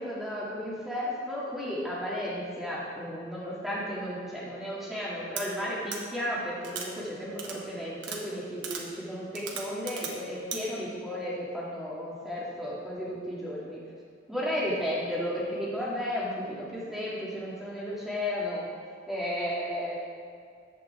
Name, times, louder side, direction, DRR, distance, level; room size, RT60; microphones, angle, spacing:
voice 1, 0.0-13.8 14.3-18.6 19.1-20.0, equal, ahead, -8 dB, 2.6 m, -33 dB
sound 1, 5.4-5.5 5.9-6.0 6.6-6.9 7.4-7.6 8.0-8.2 8.6-8.8 9.3-10.1 10.5-10.6, right 6 dB, 65° right, 1.3 m, -36 dB
14.0 x 8.5 x 3.6 m, 2.1 s
head